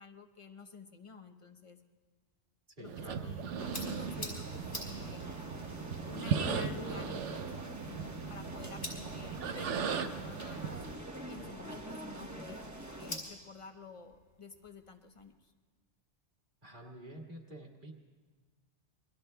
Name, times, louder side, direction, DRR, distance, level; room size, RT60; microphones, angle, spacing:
voice 1, 0.0-1.8 2.8-3.4 3.8-5.3 6.1-10.8 11.3-12.7 13.0-15.5, left 4 dB, 30° left, 7 dB, 0.7 m, -50 dB
voice 2, 2.8-3.4 11.4-11.7 16.6-17.9, right 1 dB, 45° right, 0 dB, 1.9 m, -49 dB
sound 1, 2.8-11.0, right 7 dB, 85° right, 1.1 m, -38 dB
sound 2, 3.0-15.3, left 1 dB, 70° left, 4.3 m, -50 dB
sound 3, 3.6-13.2, right 1 dB, 15° right, 0.9 m, -45 dB
27.5 x 22.5 x 2.2 m, 1.4 s
omnidirectional pair, 1.2 m